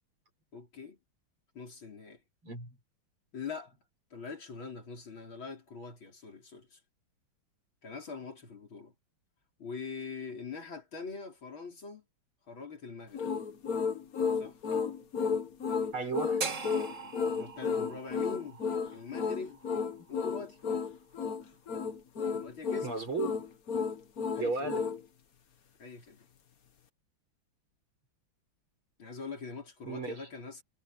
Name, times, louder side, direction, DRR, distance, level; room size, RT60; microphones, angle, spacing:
voice 1, 0.5-1.0 1.6-2.2 3.3-3.8 4.1-6.8 7.8-8.9 9.6-12.0 12.5-13.3 14.3-14.6 17.0-18.6 18.9-19.6 20.1-20.6 22.3-22.9 24.3-24.9 25.8-26.2 29.0-30.6, left 5 dB, 70° left, 5.5 m, -43 dB
voice 2, 2.4-2.8 14.7-15.1 15.9-16.4 22.8-23.4 24.4-24.8 29.9-30.3, right 4 dB, 80° right, 7.5 m, -35 dB
sound 1, 13.1-25.0, left 6 dB, 45° left, 1.7 m, -32 dB
sound 2, 16.4-20.5, right 4 dB, 40° right, 2.1 m, -41 dB
omnidirectional pair, 2.3 m